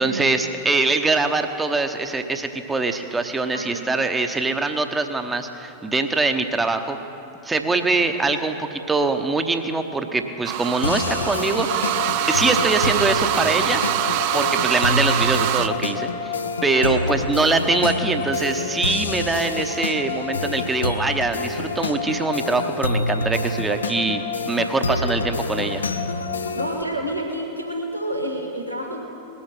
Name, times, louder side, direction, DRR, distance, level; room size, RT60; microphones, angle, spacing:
voice 1, 0.0-7.0 7.4-11.9 12.3-13.8 14.3-16.4 16.6-25.8, right 3 dB, 10° right, 7 dB, 0.9 m, -23 dB
voice 2, 3.5-3.8 7.7-7.8 12.4-12.8 16.7-17.1 24.9-25.1 26.5-29.0, right 1 dB, 85° right, 0 dB, 1.6 m, -29 dB
sound 1, 10.4-15.7, right 14 dB, 45° right, 0.4 m, -24 dB
sound 2, 10.8-26.8, left 3 dB, 75° left, 0.6 m, -27 dB
19.5 x 8.6 x 5.9 m, 2.8 s
figure-of-eight pair, 90°, 0 cm